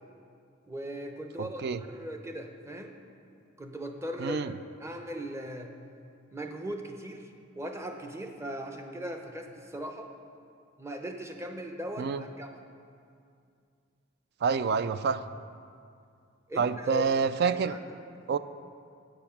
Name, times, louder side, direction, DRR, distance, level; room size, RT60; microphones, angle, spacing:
voice 1, 0.7-3.0 3.6-4.5 4.8-5.7 6.3-7.3 7.5-10.1 10.8-12.6 16.5-17.1 17.4-17.9, equal, 15° right, 4 dB, 0.7 m, -39 dB
voice 2, 1.4-1.8 4.2-4.5 12.0-12.2 14.4-15.2 16.6-17.8 18.3-18.4, right 5 dB, 55° right, 13 dB, 0.4 m, -27 dB
9.0 x 7.8 x 5.7 m, 2.3 s
head